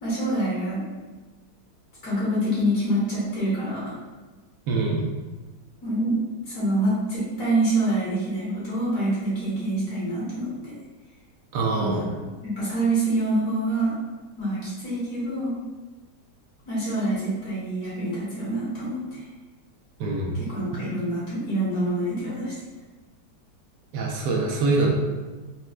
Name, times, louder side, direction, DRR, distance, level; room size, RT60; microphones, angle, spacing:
voice 1, 0.0-0.8 2.0-3.8 5.8-6.2 6.5-10.7 11.7-12.0 12.4-13.9 14.4-15.6 16.7-19.2 20.5-22.5, right 1 dB, 55° left, -9 dB, 1.5 m, -26 dB
voice 2, 4.7-5.1 11.5-12.1 20.0-20.4 23.9-24.9, right 3 dB, 80° right, -1 dB, 1.2 m, -24 dB
4.2 x 2.2 x 2.4 m, 1.3 s
omnidirectional pair, 1.9 m